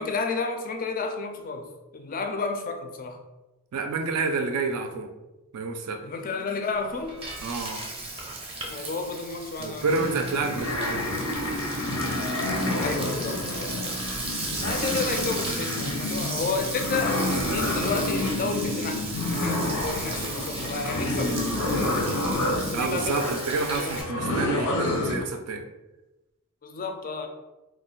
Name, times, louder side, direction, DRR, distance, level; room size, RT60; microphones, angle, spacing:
voice 1, 0.0-1.7 1.9-3.2 6.0-7.2 8.7-9.9 12.8-13.4 14.6-21.7 22.5-23.4 23.8-24.0 26.6-27.3, left 4 dB, 40° left, 5 dB, 0.3 m, -31 dB
voice 2, 3.7-5.1 5.5-6.0 7.4-7.8 9.6-11.1 22.7-25.6, right 4 dB, 80° right, 5 dB, 0.4 m, -29 dB
Frying (food), 6.7-24.0, right 2 dB, 25° right, 0.5 m, -35 dB
sound 1, 9.8-25.1, left 2 dB, 85° left, 0.6 m, -29 dB
2.4 x 2.1 x 3.8 m, 1.0 s
head